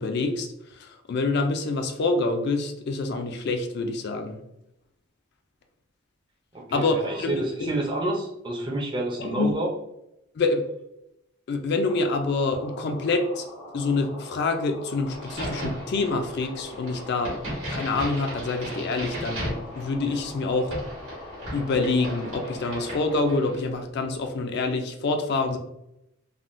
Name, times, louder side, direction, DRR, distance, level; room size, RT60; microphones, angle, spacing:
voice 1, 0.0-4.4 6.7-7.7 9.2-9.5 10.4-10.6 11.5-13.4 13.7-17.3 17.7-20.7 21.5-25.6, left 3 dB, 50° left, 5 dB, 0.3 m, -26 dB
voice 2, 6.5-9.7, right 2 dB, 25° right, 0 dB, 0.5 m, -29 dB
sound 1, 11.8-23.3, left 2 dB, 85° left, 1.1 m, -43 dB
Crack, 15.1-23.7, right 1 dB, 75° right, 1.4 m, -36 dB
3.5 x 2.1 x 2.5 m, 0.84 s
head